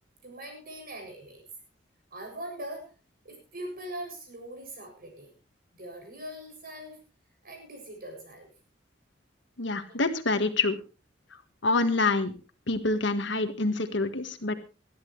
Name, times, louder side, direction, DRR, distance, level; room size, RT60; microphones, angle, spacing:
voice 1, 0.2-1.4 2.1-2.9 3.2-5.3 5.7-7.0 7.4-8.5 9.9-10.0, right 1 dB, 50° right, 3 dB, 7.2 m, -41 dB
voice 2, 9.6-10.8 11.6-12.3 12.7-14.5, left 3 dB, 70° left, 9 dB, 1.6 m, -26 dB
20.5 x 13.5 x 3.3 m, 0.31 s
head